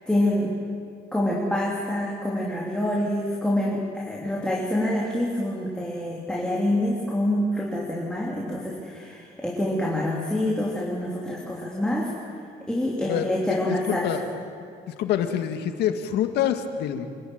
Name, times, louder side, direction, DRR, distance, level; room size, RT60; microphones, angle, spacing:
voice 1, 0.1-0.5 1.1-12.1 12.7-14.1, left 1 dB, 5° left, -4 dB, 3.3 m, -26 dB
voice 2, 13.1-14.2 15.0-17.0, left 9 dB, 80° left, 7 dB, 1.8 m, -26 dB
27.0 x 13.5 x 9.2 m, 2.4 s
cardioid pair, 110°, 17 cm